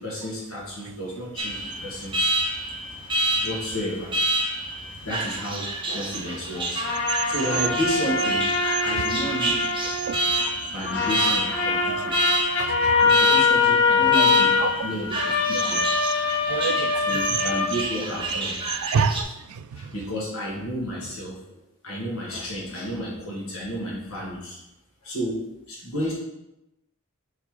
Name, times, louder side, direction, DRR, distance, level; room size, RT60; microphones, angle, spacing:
voice 1, 0.0-2.3 3.4-4.1 5.0-8.5 8.8-9.7 10.0-10.2 10.7-12.2 13.0-15.9 16.9-18.6 19.7-21.6 21.8-24.6 25.0-26.1, equal, 75° left, -4 dB, 1.7 m, -32 dB
Alarm, 1.4-19.2, right 1 dB, 25° right, 0.7 m, -29 dB
sound 1, 6.7-10.5 10.8-18.4, left 5 dB, 55° left, 1.0 m, -23 dB
voice 2, 10.1-10.5 12.0-12.1 12.6-13.1 16.5-17.2 18.8-19.8, right 5 dB, 80° right, 10 dB, 0.3 m, -28 dB
5.7 x 3.6 x 4.7 m, 0.93 s
head